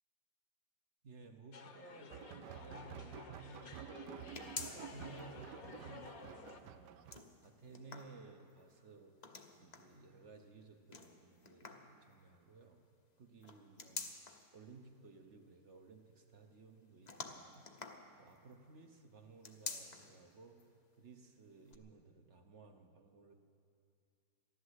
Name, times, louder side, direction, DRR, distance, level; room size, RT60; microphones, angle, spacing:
voice 1, 1.0-3.9 4.4-7.1 7.4-9.1 9.6-12.8 13.2-14.1 14.5-17.6 18.2-20.6 21.0-23.3, right 3 dB, 50° right, 5 dB, 1.0 m, -57 dB
sound 1, 1.5-6.6, left 5 dB, 60° left, 1.3 m, -53 dB
sound 2, 2.1-7.2, right 10 dB, 80° right, 1.2 m, -51 dB
sound 3, 4.3-5.2 5.6-5.7 6.9-8.6 9.2-10.0 10.9-12.0 13.4-14.5 17.1-18.5 19.3-20.2 20.6-20.7 21.7-21.8, left 4 dB, 35° left, 0.7 m, -48 dB
15.0 x 11.5 x 8.0 m, 2.5 s
omnidirectional pair, 1.8 m